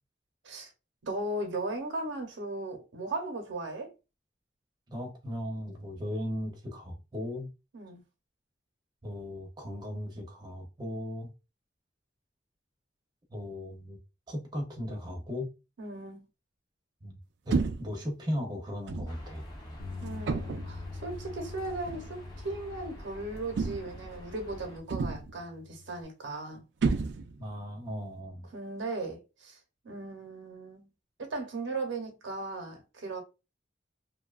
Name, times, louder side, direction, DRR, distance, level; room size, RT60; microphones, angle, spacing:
voice 1, 1.0-3.9 7.7-8.0 15.8-16.2 20.0-26.6 28.5-29.6 29.8-30.9 31.2-33.2, right 2 dB, 85° right, 0.7 m, -37 dB
voice 2, 4.9-7.5 9.0-11.3 13.3-14.0 14.3-15.5 17.0-17.2 17.5-19.5 27.4-28.5, left 1 dB, 20° right, 0.6 m, -37 dB
sound 1, 17.5-18.0 18.9-19.2 20.3-20.8 21.9-22.1 23.6-24.1 24.9-25.4 26.8-27.5, right 4 dB, 70° right, 0.4 m, -30 dB
sound 2, 19.1-24.8, equal, 20° left, 0.6 m, -46 dB
Bass guitar, 19.8-26.0, left 4 dB, 80° left, 0.4 m, -46 dB
2.6 x 2.2 x 2.3 m
head